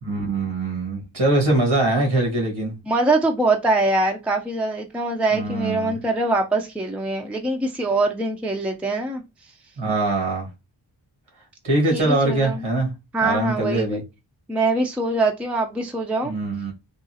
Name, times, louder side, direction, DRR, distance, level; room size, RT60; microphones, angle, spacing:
voice 1, 0.0-2.7 5.3-6.0 9.8-10.5 11.6-12.9 13.2-14.0 16.2-16.7, right 2 dB, 85° right, 1.6 m, -22 dB
voice 2, 2.9-9.2 11.9-12.6 13.1-14.0 14.5-16.3, right 2 dB, 5° right, 0.4 m, -23 dB
3.6 x 2.4 x 2.7 m
wide cardioid pair, 90°, 46 cm